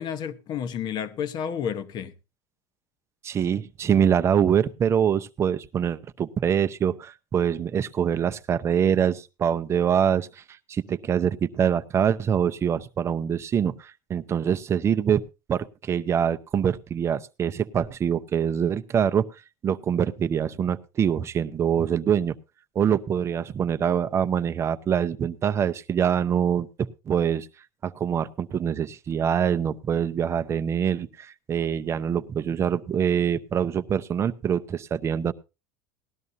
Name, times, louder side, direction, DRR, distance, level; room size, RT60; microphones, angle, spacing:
voice 1, 0.0-2.1, left 8 dB, 40° left, 1.0 m, -31 dB
voice 2, 3.2-10.4 10.7-15.2 15.5-19.3 19.6-22.3 22.8-26.7 27.1-27.5 27.8-35.3, right 8 dB, 25° right, 0.6 m, -24 dB
18.5 x 12.5 x 2.7 m
cardioid pair, 145°, 11 cm